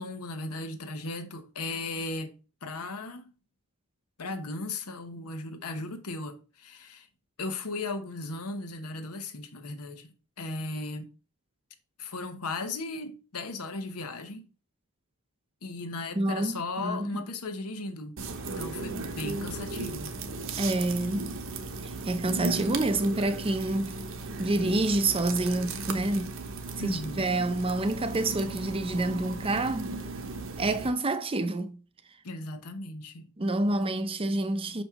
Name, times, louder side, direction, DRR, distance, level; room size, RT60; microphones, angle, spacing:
voice 1, 0.0-2.3 2.6-3.3 4.2-7.1 7.4-11.1 12.0-14.4 15.6-18.2 18.6-20.1 26.8-27.3 32.2-33.3, left 2 dB, 90° left, 1.1 m, -36 dB
voice 2, 16.2-17.2 20.6-21.3 21.8-24.0 24.4-26.3 26.8-29.9 30.6-31.8 33.4-34.8, right 2 dB, 25° right, 0.6 m, -28 dB
sound 1, 18.2-30.9, right 3 dB, 60° right, 0.9 m, -36 dB
6.0 x 5.2 x 3.5 m
head